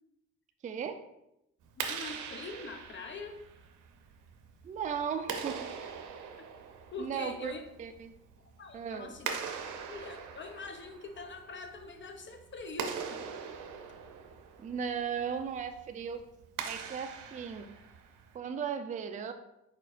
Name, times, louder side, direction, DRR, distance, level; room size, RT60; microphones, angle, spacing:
voice 1, 0.6-1.0 4.6-5.7 7.0-8.1 8.7-9.2 14.6-16.2 16.6-17.7 18.3-19.3, right 7 dB, 25° right, 8 dB, 0.4 m, -36 dB
Clapping, 1.6-18.4, right 6 dB, 85° right, 0.6 m, -42 dB
voice 2, 1.8-3.4 6.9-7.6 8.5-9.3 9.9-13.2, left 3 dB, 40° left, 6 dB, 0.6 m, -43 dB
4.5 x 4.3 x 2.4 m, 0.83 s
cardioid pair, 90°, 30 cm